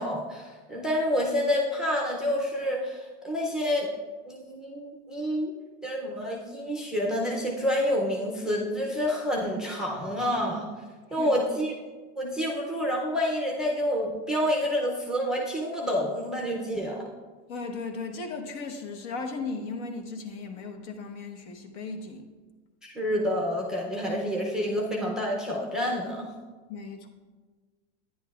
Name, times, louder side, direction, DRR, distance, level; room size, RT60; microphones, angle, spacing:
voice 1, 0.0-3.9 4.3-5.5 5.8-10.7 11.1-11.7 12.2-17.1 22.8-26.3, equal, ahead, -2 dB, 0.4 m, -28 dB
voice 2, 17.5-22.3 26.7-27.1, left 4 dB, 70° left, 4 dB, 1.2 m, -36 dB
10.5 x 9.8 x 2.3 m, 1.4 s
supercardioid pair, 165°, 36 cm